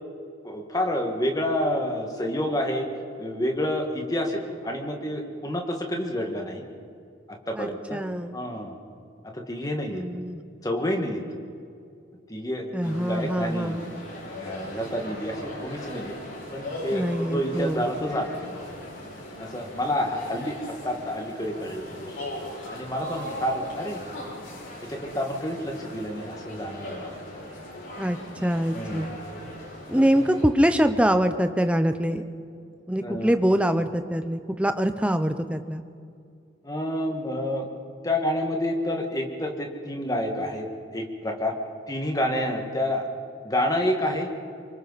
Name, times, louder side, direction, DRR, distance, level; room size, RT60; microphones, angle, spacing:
voice 1, 0.4-2.9 3.2-6.6 7.3-8.0 8.3-8.8 9.2-10.0 10.6-11.2 12.3-13.8 14.3-16.1 16.5-18.6 19.4-22.1 22.7-24.0 24.8-27.1 28.7-29.1 29.9-30.0 33.0-33.3 36.6-37.7 38.0-41.6 41.9-43.1 43.4-44.3, left 1 dB, 20° left, 2 dB, 1.8 m, -29 dB
voice 2, 7.6-8.4 9.9-10.4 12.7-13.9 16.9-17.9 28.0-29.1 29.9-32.2 32.9-35.8, equal, 5° right, 9 dB, 0.7 m, -24 dB
sound 1, 12.8-30.4, left 1 dB, 85° left, 6.5 m, -39 dB
27.0 x 24.0 x 4.2 m, 2.5 s
head